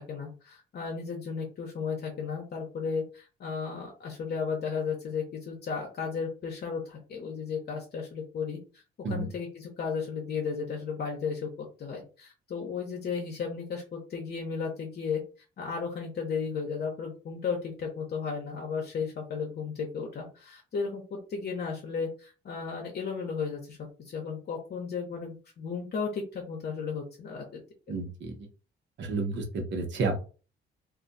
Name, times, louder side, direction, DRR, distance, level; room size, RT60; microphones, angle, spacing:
voice 1, 0.0-8.6 9.1-15.2 15.6-23.8 24.0-27.6, left 5 dB, 55° left, 0 dB, 0.8 m, -34 dB
voice 2, 27.9-28.4 29.0-30.2, right 3 dB, 65° right, 3 dB, 1.0 m, -31 dB
2.5 x 2.3 x 3.9 m, 0.35 s
cardioid pair, 90°, 20 cm